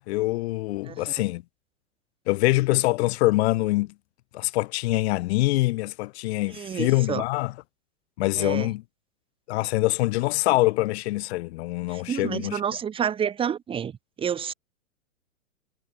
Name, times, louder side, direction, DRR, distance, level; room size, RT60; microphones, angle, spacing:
voice 1, 0.0-1.4 2.3-3.9 4.3-7.5 8.2-8.8 9.5-12.6, left 20 dB, 50° left, 1.6 m, -24 dB
voice 2, 6.5-7.2 8.4-8.7 11.9-13.9 14.2-14.5, right 8 dB, 15° right, 0.9 m, -29 dB
hypercardioid pair, 120°, 41 cm